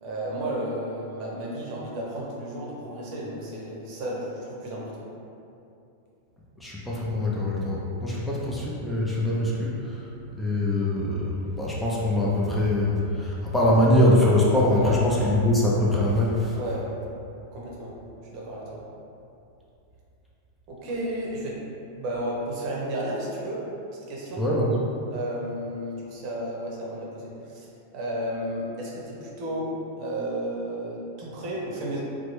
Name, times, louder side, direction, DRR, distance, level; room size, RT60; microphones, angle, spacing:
voice 1, 0.0-5.1 14.8-15.0 16.5-16.9 17.5-18.0 18.2-18.8 20.7-21.6 22.0-23.6 24.1-24.4 25.1-27.7 27.9-29.7 30.0-32.0, right 1 dB, 50° right, -4 dB, 0.7 m, -33 dB
voice 2, 6.6-16.6 24.4-24.9, left 1 dB, 10° left, -6 dB, 0.5 m, -23 dB
2.9 x 2.1 x 3.1 m, 2.7 s
hypercardioid pair, 115°, 0 cm